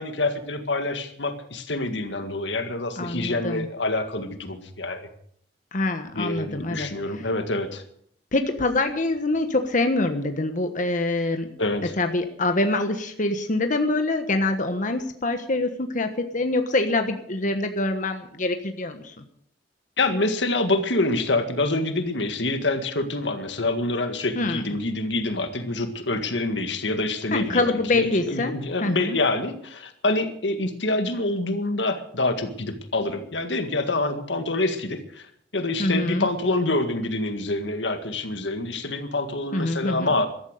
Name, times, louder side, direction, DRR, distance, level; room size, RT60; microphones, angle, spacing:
voice 1, 0.0-5.1 6.1-7.8 11.6-11.9 20.0-40.3, left 2 dB, 85° left, 7 dB, 1.9 m, -26 dB
voice 2, 3.0-3.7 5.7-6.9 7.1-7.2 8.3-11.5 12.0-19.1 24.4-24.7 27.3-28.5 28.8-29.2 35.8-36.3 39.5-40.1, left 2 dB, 45° left, 6 dB, 1.3 m, -25 dB
14.5 x 12.5 x 6.6 m, 0.64 s
head